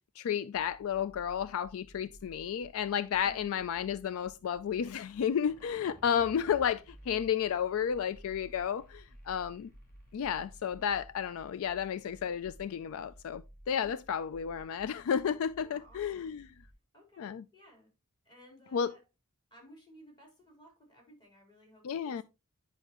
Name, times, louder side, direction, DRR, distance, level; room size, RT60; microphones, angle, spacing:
voice 1, 0.2-9.7 10.1-16.5 17.2-17.4 18.7-18.9 21.8-22.2, left 8 dB, 65° left, 0.3 m, -32 dB
sound 1, 0.5-16.7, right 1 dB, 40° left, 2.2 m, -56 dB
voice 2, 15.5-16.4 16.9-17.9 18.2-19.0 19.5-22.2, equal, 20° left, 3.8 m, -58 dB
9.8 x 5.6 x 3.0 m
head